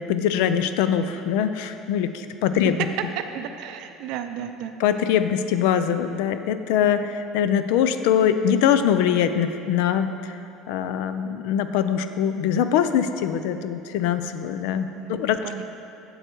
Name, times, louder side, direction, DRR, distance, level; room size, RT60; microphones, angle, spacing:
voice 1, 0.0-2.8 4.8-10.4 10.7-15.6, left 9 dB, 75° left, 10 dB, 0.4 m, -23 dB
voice 2, 3.2-4.7 14.9-15.6, right 8 dB, 60° right, 8 dB, 0.4 m, -34 dB
7.9 x 7.9 x 4.5 m, 2.7 s
cardioid pair, 170°, 0 cm